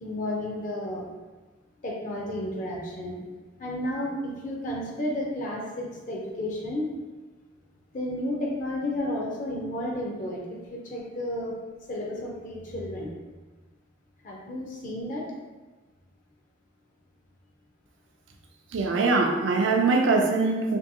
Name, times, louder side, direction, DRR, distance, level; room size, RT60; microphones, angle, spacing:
voice 1, 0.0-1.0 1.8-3.2 3.6-6.9 7.9-11.5 11.9-13.1 14.2-15.3, left 1 dB, 40° left, -2 dB, 0.4 m, -32 dB
voice 2, 18.7-20.8, right 3 dB, 70° right, 2 dB, 0.4 m, -22 dB
2.7 x 2.6 x 2.6 m, 1.3 s
head